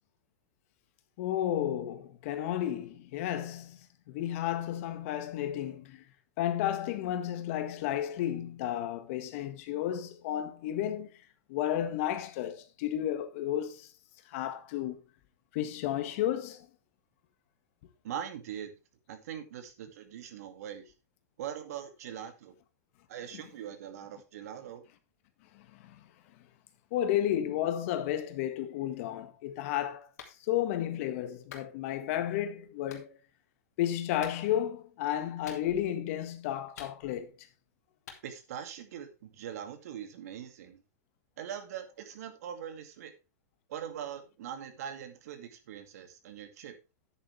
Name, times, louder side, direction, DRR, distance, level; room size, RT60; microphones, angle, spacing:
voice 1, 1.2-3.8 4.1-6.0 6.4-11.1 11.5-13.9 14.3-15.0 15.5-16.7 25.5-26.1 26.9-30.1 30.5-33.2 33.8-37.3, left 11 dB, 55° left, 1.7 m, -32 dB
voice 2, 18.0-18.7 19.1-20.9 21.4-22.5 23.1-24.8 38.2-40.8 41.4-43.1 43.7-46.7, right 9 dB, 70° right, 2.4 m, -42 dB
Clapping, 30.2-30.4 31.5-31.7 32.9-33.1 34.2-34.4 35.5-35.9 36.8-37.3 38.1-38.2, left 7 dB, 80° left, 2.5 m, -48 dB
9.9 x 9.1 x 3.4 m
supercardioid pair, 140°, 9 cm